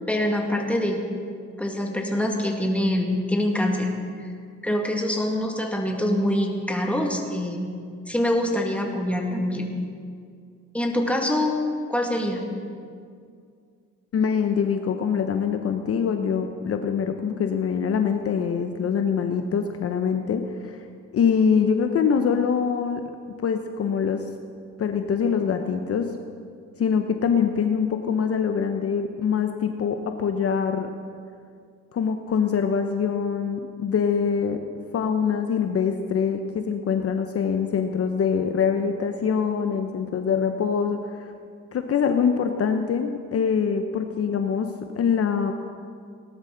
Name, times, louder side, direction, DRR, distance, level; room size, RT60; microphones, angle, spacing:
voice 1, 0.1-1.0 1.6-3.9 4.2-4.3 4.6-7.7 8.1-9.7 10.7-11.6 11.9-12.5, left 1 dB, 5° left, 1 dB, 2.0 m, -25 dB
voice 2, 14.1-20.8 21.1-24.3 24.8-26.2 26.8-30.9 31.9-34.6 34.9-41.3 41.7-45.5, left 6 dB, 50° left, 6 dB, 0.8 m, -24 dB
18.0 x 12.0 x 3.9 m, 2.2 s
cardioid pair, 90°, 30 cm